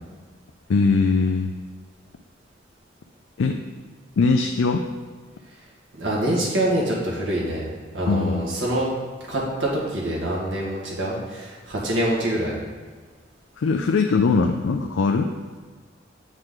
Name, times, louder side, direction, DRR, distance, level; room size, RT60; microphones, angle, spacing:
voice 1, 0.7-1.5 3.4-3.6 4.2-4.8 8.1-8.6 13.6-15.3, left 4 dB, 90° left, 4 dB, 0.4 m, -21 dB
voice 2, 6.0-8.9 9.3-12.6, right 1 dB, 75° right, -5 dB, 1.9 m, -25 dB
7.7 x 4.8 x 3.8 m, 1.5 s
head